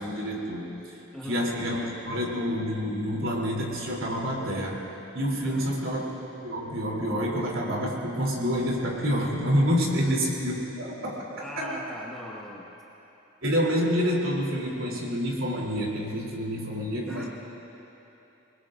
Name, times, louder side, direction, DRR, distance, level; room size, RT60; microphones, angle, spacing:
voice 1, 0.0-4.8 5.1-6.2 6.4-11.9 13.4-17.3, equal, 80° right, -3 dB, 3.2 m, -28 dB
voice 2, 1.1-1.4 5.4-5.8 9.9-10.2 11.4-12.8 17.1-17.2, left 1 dB, 5° left, -5 dB, 1.1 m, -40 dB
27.0 x 20.5 x 2.6 m, 3.0 s
head